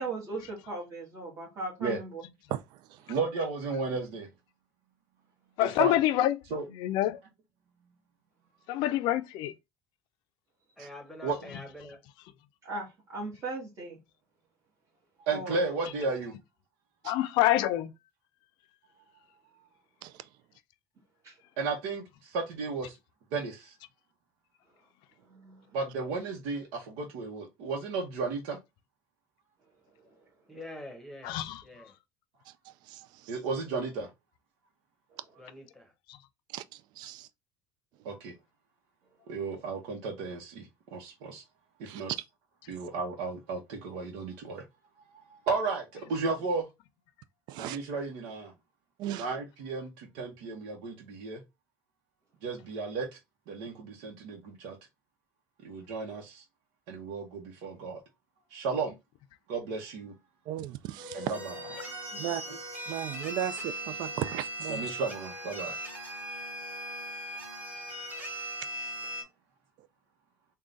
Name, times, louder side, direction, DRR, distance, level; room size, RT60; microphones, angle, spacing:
voice 1, 0.0-2.2 12.6-14.0 15.3-15.6 21.2-21.4 25.3-25.8 35.1-35.2 62.1-62.4, right 2 dB, 40° right, 1.4 m, -38 dB
voice 2, 2.5-3.2 10.8-10.9 17.0-17.1 20.0-20.3 32.5-33.4 36.5-37.3 41.9-42.0 47.5-47.8 49.0-49.3 60.5-61.3 62.2-62.4 62.9-64.9, right 11 dB, 65° right, 0.4 m, -37 dB
voice 3, 3.1-4.3 5.6-6.0 6.5-6.6 11.2-11.4 15.3-16.3 21.6-22.0 22.3-22.9 23.3-23.5 25.7-26.7 27.0-28.6 33.3-34.1 38.1-38.3 39.3-40.6 40.9-41.4 41.8-42.1 42.7-44.6 45.5-45.8 46.1-46.6 47.6-48.5 49.2-49.9 50.2-51.4 52.4-53.0 53.5-54.7 55.6-56.3 56.9-58.0 58.5-58.9 59.5-60.1 61.1-61.5 64.7-65.7, right 4 dB, 80° right, 0.9 m, -33 dB
voice 4, 5.6-6.4 6.7-7.2 8.7-9.5 17.0-17.9 31.2-31.6, left 14 dB, 70° left, 0.4 m, -26 dB
voice 5, 10.8-12.0 30.5-31.9 35.4-35.9, left 1 dB, ahead, 1.0 m, -46 dB
sound 1, 61.0-69.2, right 1 dB, 25° right, 1.3 m, -39 dB
3.7 x 2.3 x 3.8 m
cardioid pair, 125°, 8 cm